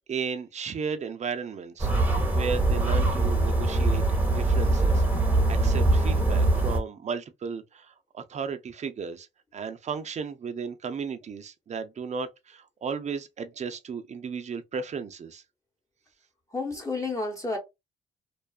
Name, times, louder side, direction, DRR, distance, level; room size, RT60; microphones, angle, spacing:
voice 1, 0.1-1.9 2.3-5.0 5.5-9.3 9.5-15.4, right 5 dB, 35° right, 0.5 m, -34 dB
sound 1, 1.8-6.8, right 2 dB, 10° right, 0.9 m, -23 dB
voice 2, 16.5-17.6, left 3 dB, 15° left, 1.0 m, -30 dB
2.5 x 2.3 x 2.2 m
cardioid pair, 90°, 20 cm